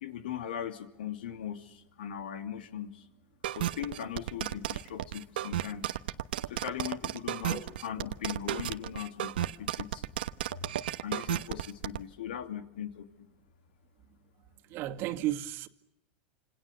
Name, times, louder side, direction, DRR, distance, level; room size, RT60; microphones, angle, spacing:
voice 1, 0.0-3.1 3.5-6.0 6.5-10.0 10.6-10.7 11.0-13.3, left 9 dB, 90° left, 2.8 m, -39 dB
sound 1, 3.4-12.0, right 12 dB, 90° right, 1.2 m, -33 dB
voice 2, 14.7-15.7, right 14 dB, 50° right, 2.2 m, -33 dB
28.5 x 27.0 x 7.1 m
supercardioid pair, 125°, 5 cm